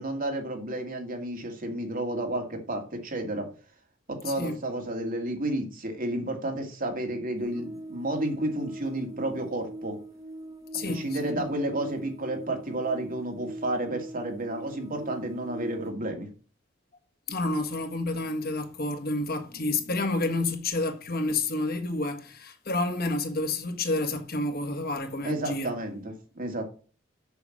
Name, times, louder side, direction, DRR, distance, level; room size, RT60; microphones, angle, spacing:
voice 1, 0.0-3.5 4.1-10.0 10.8-16.3 25.2-26.7, right 1 dB, 45° right, 2.3 m, -31 dB
voice 2, 4.2-4.6 10.7-11.4 17.3-25.7, left 2 dB, 50° left, 1.5 m, -29 dB
sound 1, 7.4-15.9, right 1 dB, 20° right, 0.9 m, -41 dB
7.0 x 6.7 x 7.3 m
head